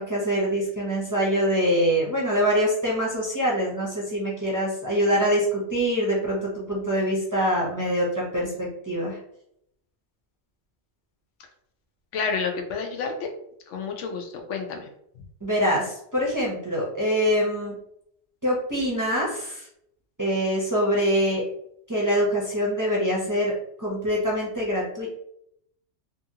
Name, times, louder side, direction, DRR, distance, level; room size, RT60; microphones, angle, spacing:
voice 1, 0.0-9.2 15.4-17.7 18.4-19.7 20.2-21.4 21.9-23.5 23.8-25.1, equal, 20° right, -5 dB, 0.6 m, -24 dB
voice 2, 12.1-13.3 13.7-14.9, left 5 dB, 85° left, 4 dB, 0.9 m, -30 dB
2.8 x 2.6 x 2.7 m, 0.74 s
omnidirectional pair, 1.2 m